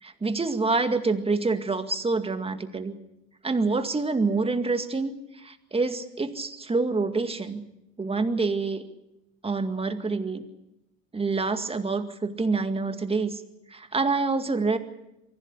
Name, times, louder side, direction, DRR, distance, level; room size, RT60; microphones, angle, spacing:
voice 1, 0.0-3.0 3.4-7.6 8.0-8.8 9.4-10.4 11.1-13.4 13.7-14.8, right 3 dB, 15° right, 8 dB, 2.1 m, -27 dB
24.0 x 16.0 x 8.4 m, 0.88 s
hypercardioid pair, 85°, 43 cm